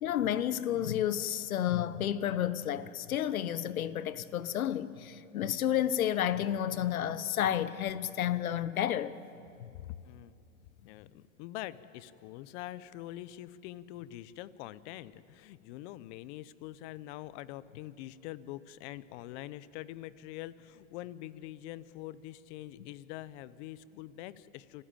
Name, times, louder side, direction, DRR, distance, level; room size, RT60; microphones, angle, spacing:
voice 1, 0.0-9.2, left 11 dB, 90° left, 1.0 m, -31 dB
voice 2, 9.8-10.3 10.8-24.8, left 14 dB, 55° left, 1.0 m, -44 dB
27.0 x 14.5 x 9.1 m
hypercardioid pair, 110°, 41 cm